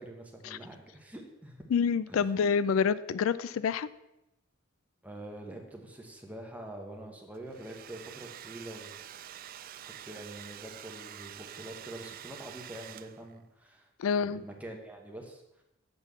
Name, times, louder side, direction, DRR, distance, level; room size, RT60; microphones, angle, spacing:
voice 1, 0.0-1.7 2.1-2.4 5.0-8.9 10.0-13.9 14.2-15.6, right 1 dB, 5° right, 1 dB, 1.2 m, -45 dB
voice 2, 1.7-3.9 14.0-14.4, left 6 dB, 90° left, 16 dB, 0.4 m, -27 dB
Domestic sounds home sounds, 7.3-13.4, right 11 dB, 45° right, 0.3 m, -47 dB
7.7 x 4.5 x 6.9 m, 0.89 s
head